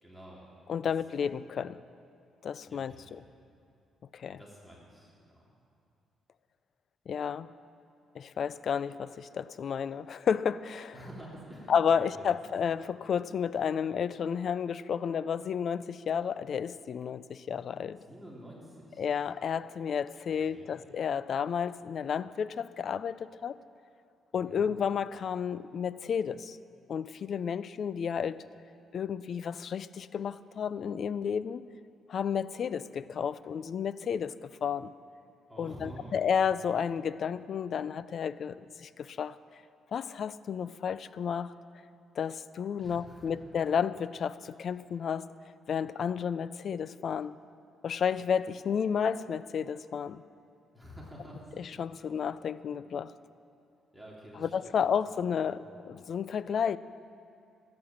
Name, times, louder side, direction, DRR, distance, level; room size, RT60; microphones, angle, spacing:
voice 1, 0.0-0.5 2.7-3.1 4.3-5.5 10.9-12.3 18.0-19.0 20.4-20.8 24.3-24.7 35.5-36.2 42.8-43.4 50.7-51.8 53.9-54.9 55.4-55.7, right 1 dB, ahead, -5 dB, 3.3 m, -49 dB
voice 2, 0.7-1.8 2.4-2.9 4.1-4.4 7.1-7.5 8.2-11.0 11.7-18.0 19.0-23.5 24.3-26.6 26.9-28.4 28.9-31.6 32.1-34.9 35.6-39.4 39.9-41.5 42.2-45.3 45.7-47.4 47.8-50.2 51.6-53.1 54.4-56.8, left 7 dB, 55° left, 16 dB, 0.4 m, -32 dB
14.0 x 9.6 x 7.3 m, 2.5 s
cardioid pair, 90°, 0 cm